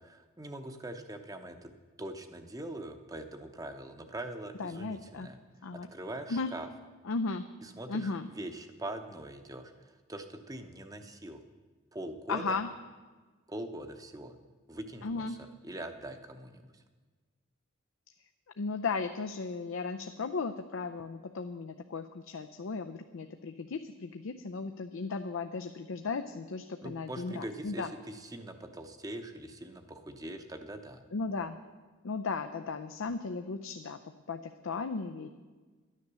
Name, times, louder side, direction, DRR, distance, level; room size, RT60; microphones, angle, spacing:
voice 1, 0.0-1.7 2.0-5.4 5.7-6.7 7.6-11.4 11.9-12.6 13.5-14.4 14.7-15.4 15.6-16.8 26.8-31.0, right 1 dB, 15° right, 7 dB, 0.8 m, -42 dB
voice 2, 4.6-5.3 5.6-5.9 6.3-6.5 7.1-7.5 7.9-8.3 12.3-12.7 15.0-15.4 18.6-27.9 31.1-31.6 32.0-34.0 34.3-35.3, left 4 dB, 75° left, 7 dB, 0.5 m, -35 dB
11.5 x 9.9 x 6.8 m, 1.3 s
head